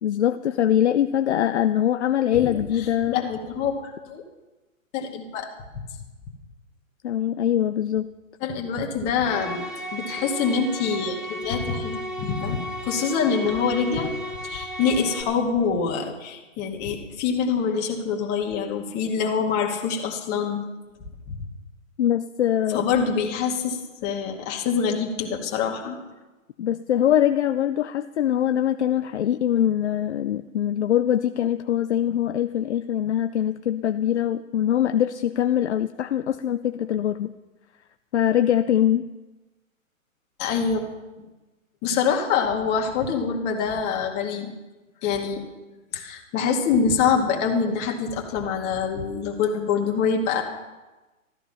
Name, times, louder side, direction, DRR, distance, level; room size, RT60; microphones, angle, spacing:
voice 1, 0.0-3.2 7.0-8.1 22.0-22.8 26.6-37.3 38.1-39.1, left 10 dB, 55° left, 9 dB, 0.7 m, -23 dB
voice 2, 3.1-3.7 4.1-4.2 4.9-5.5 8.4-14.1 14.4-20.6 21.3-21.4 22.7-26.0 40.4-40.8 41.8-44.5 45.0-45.4 45.9-50.4, left 6 dB, 25° left, 1 dB, 2.2 m, -25 dB
sound 1, 9.2-15.2, equal, ahead, 1.3 m, -34 dB
14.0 x 13.5 x 5.6 m, 1.1 s
hypercardioid pair, 135°, 41 cm